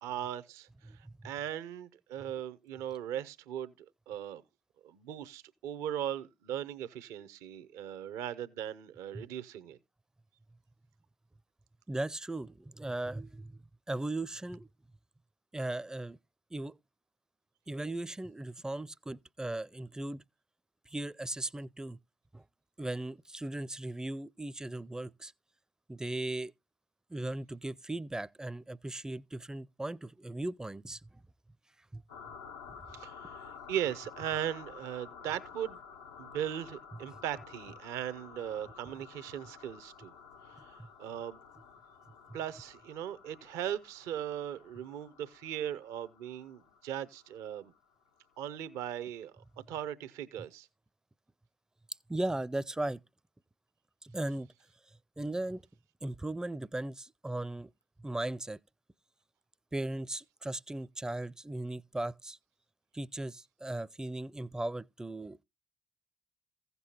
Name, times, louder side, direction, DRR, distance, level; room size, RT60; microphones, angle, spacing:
voice 1, 0.0-4.4 4.8-9.8 32.9-35.8 36.2-40.1 40.4-41.4 42.3-47.7 48.4-50.7, right 10 dB, 75° right, 0.6 m, -39 dB
voice 2, 11.9-13.6 13.9-14.7 15.5-16.2 16.5-16.7 17.7-20.2 20.9-22.0 22.3-22.4 22.8-25.3 25.9-26.5 27.1-31.0 31.9-32.0 40.8-40.9 52.1-53.0 54.0-54.5 55.2-55.6 56.0-57.7 58.0-58.6 59.7-62.4 62.9-65.4, right 2 dB, 10° right, 0.4 m, -37 dB
sound 1, 32.1-48.4, left 6 dB, 90° left, 0.5 m, -52 dB
15.5 x 6.8 x 2.8 m
hypercardioid pair, 45°, 5 cm